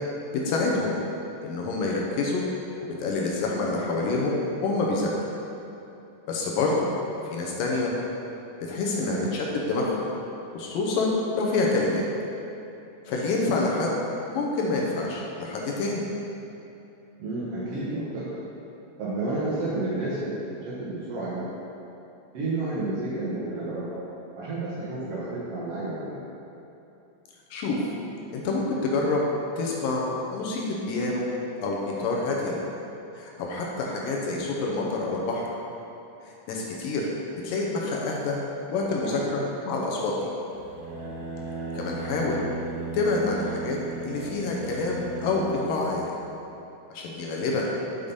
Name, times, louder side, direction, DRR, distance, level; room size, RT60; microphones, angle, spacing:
voice 1, 0.5-1.0 1.4-2.4 3.0-5.1 6.3-6.9 7.3-7.9 8.7-10.1 10.5-12.1 13.1-13.9 14.3-16.1 27.5-27.8 28.3-29.2 29.6-31.3 31.6-32.6 33.2-35.5 36.2-37.1 37.4-38.4 38.7-40.1 41.7-42.4 42.9-43.8 44.0-46.1 46.9-47.7, left 3 dB, 75° left, -2 dB, 2.4 m, -27 dB
voice 2, 8.9-9.3 17.2-18.4 19.0-21.5 22.3-24.0 24.4-26.2 39.0-39.2, right 2 dB, 65° right, -9 dB, 1.6 m, -31 dB
sound 1, 40.5-45.8, right 3 dB, 85° right, 2.6 m, -36 dB
6.5 x 5.5 x 5.2 m, 2.9 s
omnidirectional pair, 4.1 m